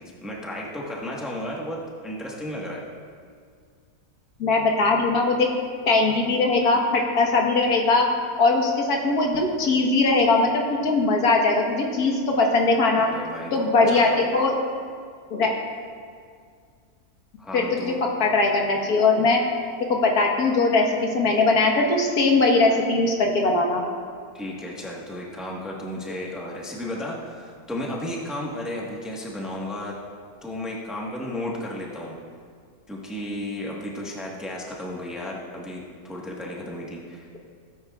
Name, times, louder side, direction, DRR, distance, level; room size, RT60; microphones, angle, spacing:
voice 1, 0.0-2.8 12.9-14.2 17.4-18.0 24.3-29.9 30.4-32.2 32.9-37.4, left 1 dB, ahead, -3 dB, 1.1 m, -33 dB
voice 2, 4.4-5.5 5.9-8.1 8.4-13.1 13.5-14.5 15.3-15.6 17.5-18.0 18.2-19.4 19.9-23.8, left 3 dB, 75° left, 0 dB, 1.8 m, -20 dB
17.5 x 9.3 x 2.4 m, 2.1 s
omnidirectional pair, 1.6 m